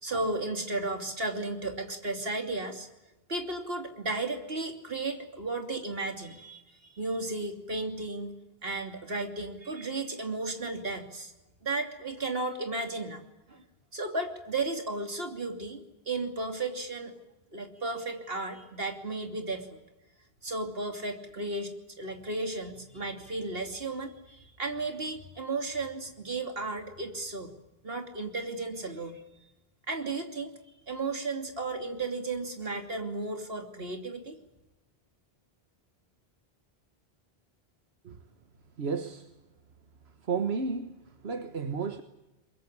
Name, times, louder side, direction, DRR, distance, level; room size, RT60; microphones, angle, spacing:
voice 1, 0.0-2.9 3.3-8.3 8.6-11.3 11.6-13.2 13.5-13.6 13.9-17.2 17.5-19.8 20.4-27.5 27.8-29.2 29.9-30.5 30.9-34.4, right 2 dB, 70° right, 3.1 m, -34 dB
voice 2, 38.8-39.3 40.2-42.0, right 5 dB, 85° right, 1.6 m, -32 dB
23.0 x 22.5 x 9.7 m
omnidirectional pair, 1.0 m